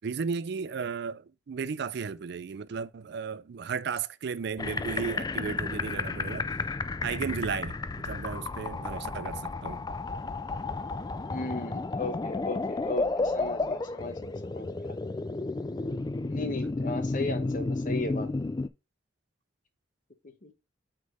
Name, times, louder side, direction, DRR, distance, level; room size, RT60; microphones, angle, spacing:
voice 1, 0.0-6.5 7.0-9.8, right 5 dB, 60° right, 0.4 m, -34 dB
sound 1, 4.6-18.7, left 3 dB, 20° left, 0.3 m, -32 dB
voice 2, 11.3-14.9 16.3-18.3 20.4-20.5, left 2 dB, 45° left, 0.9 m, -36 dB
6.2 x 3.8 x 5.3 m
head